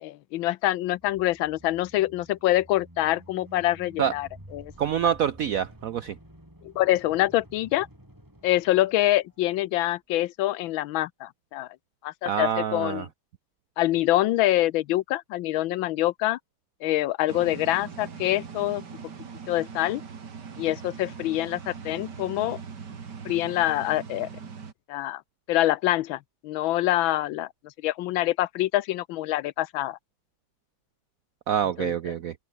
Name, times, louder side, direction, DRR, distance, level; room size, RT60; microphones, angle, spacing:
voice 1, 0.0-4.7 6.6-7.9 8.4-11.7 12.0-13.1 13.8-16.4 16.8-18.8 19.5-20.0 20.6-22.6 23.2-24.3 24.9-25.2 25.5-27.5 27.8-30.0 31.8-32.1, left 15 dB, 80° left, 1.4 m, -25 dB
sound 1, 0.8-9.6, equal, 10° right, 7.0 m, -51 dB
voice 2, 4.8-6.1 12.3-13.1 31.5-32.3, right 9 dB, 75° right, 0.8 m, -26 dB
sound 2, 17.3-24.7, right 6 dB, 55° right, 2.6 m, -41 dB
open air
omnidirectional pair, 2.2 m